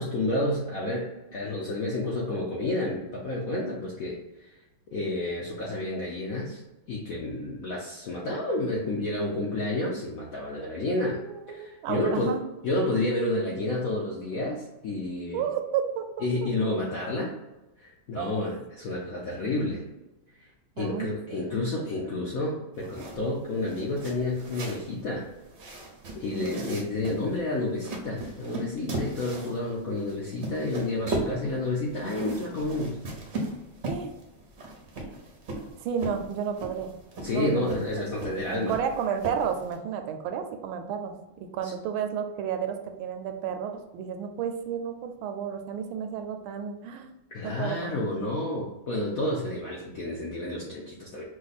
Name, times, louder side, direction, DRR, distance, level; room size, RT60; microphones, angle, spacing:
voice 1, 0.0-4.6 4.9-6.6 6.9-12.4 12.6-15.4 16.2-17.3 17.8-19.8 20.4-20.5 20.8-25.3 26.2-33.0 37.2-38.8 41.6-41.7 47.3-51.2, left 2 dB, 70° left, -3 dB, 0.8 m, -30 dB
voice 2, 10.8-12.4 15.3-16.5 18.2-18.3 20.8-21.4 26.3-26.7 33.9-34.1 35.8-36.9 37.3-37.8 38.2-47.1 47.4-48.0, right 8 dB, 80° right, 6 dB, 1.4 m, -32 dB
sound 1, 22.7-39.8, right 2 dB, 55° right, 0.7 m, -38 dB
5.0 x 2.2 x 4.0 m, 1.0 s
omnidirectional pair, 2.2 m